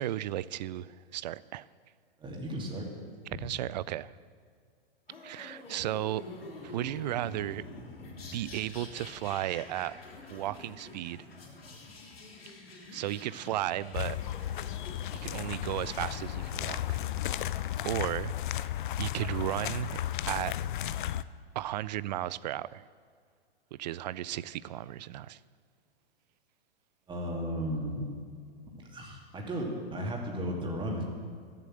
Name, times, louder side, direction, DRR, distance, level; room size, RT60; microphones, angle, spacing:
voice 1, 0.0-1.7 3.4-4.1 5.2-6.2 6.6-7.6 8.3-10.0 10.3-11.2 12.9-14.2 15.2-17.0 17.8-18.7 19.0-20.0 20.3-20.5 21.6-22.8 23.7-25.4, right 13 dB, 50° right, 20 dB, 0.4 m, -34 dB
voice 2, 2.2-2.9 27.1-28.1 28.7-31.0, equal, 15° right, -1 dB, 2.5 m, -35 dB
sound 1, 5.1-17.8, left 3 dB, 75° left, 3.1 m, -47 dB
sound 2, 13.9-21.2, left 12 dB, 55° left, 0.5 m, -34 dB
13.5 x 7.8 x 7.6 m, 2.1 s
figure-of-eight pair, 110°, 29 cm